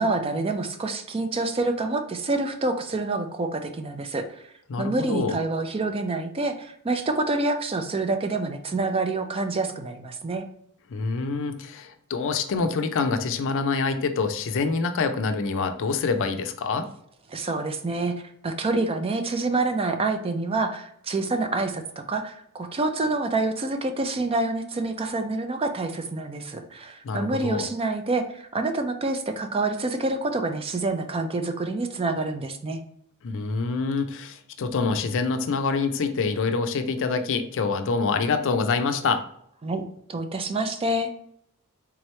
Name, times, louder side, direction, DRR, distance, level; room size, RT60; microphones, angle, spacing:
voice 1, 0.0-4.5 4.8-10.5 17.3-32.8 39.6-39.8 40.1-41.1, right 2 dB, 25° right, 7 dB, 0.4 m, -27 dB
voice 2, 4.7-5.4 10.9-16.9 27.0-27.7 33.2-39.2, left 4 dB, 60° left, 8 dB, 0.4 m, -26 dB
3.6 x 3.0 x 3.1 m, 0.71 s
head